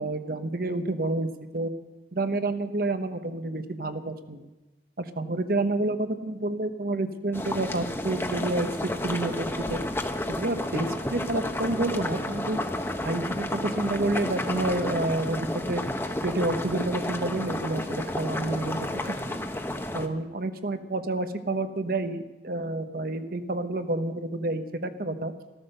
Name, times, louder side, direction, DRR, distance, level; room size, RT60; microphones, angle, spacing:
voice 1, 0.0-1.7 2.1-4.5 5.0-9.8 10.3-12.6 13.0-15.8 16.2-19.0 19.3-19.4 19.9-25.3, right 2 dB, 50° right, 9 dB, 1.0 m, -29 dB
sound 1, 7.3-20.1, left 1 dB, 10° left, 0.9 m, -31 dB
14.5 x 13.5 x 6.7 m, 1.1 s
head